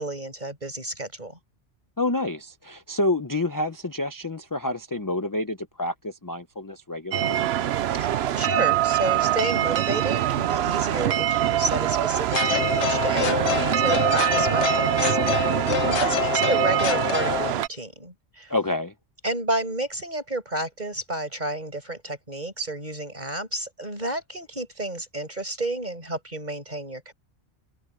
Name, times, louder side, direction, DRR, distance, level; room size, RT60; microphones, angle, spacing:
voice 1, 0.0-1.4 7.9-18.5 19.2-27.1, right 1 dB, 40° right, 7.4 m, -31 dB
voice 2, 2.0-7.4 18.5-18.9, left 2 dB, 20° left, 0.8 m, -28 dB
sound 1, 7.1-17.7, right 12 dB, 65° right, 0.8 m, -24 dB
sound 2, 12.3-17.5, left 9 dB, 80° left, 1.2 m, -26 dB
omnidirectional pair, 1.2 m